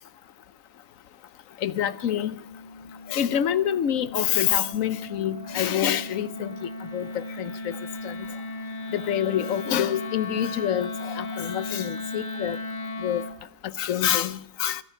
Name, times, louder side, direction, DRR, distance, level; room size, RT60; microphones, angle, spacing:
voice 1, 1.6-2.4 3.1-6.5 6.9-7.7 8.0-8.1 8.9-12.6 13.0-13.2 13.8-14.8, left 10 dB, 75° left, 1.1 m, -26 dB
Wind instrument woodwind instrument, 1.9-13.4, left 2 dB, 35° left, 1.5 m, -36 dB
15.0 x 13.5 x 5.7 m
omnidirectional pair, 1.4 m